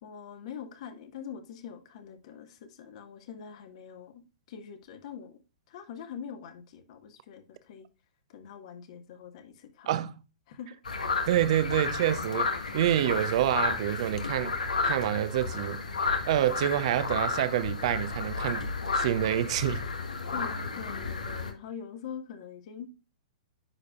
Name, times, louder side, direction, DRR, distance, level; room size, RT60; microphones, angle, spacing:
voice 1, 0.0-5.4 5.7-7.9 8.3-9.9 10.5-10.8 20.3-22.9, left 7 dB, 55° left, 1.6 m, -44 dB
sound 1, 10.9-21.5, left 4 dB, 85° left, 1.4 m, -32 dB
voice 2, 11.3-14.6 14.8-15.8 16.3-19.8, right 12 dB, 55° right, 0.7 m, -27 dB
9.7 x 5.0 x 2.4 m
hypercardioid pair, 115°, 4 cm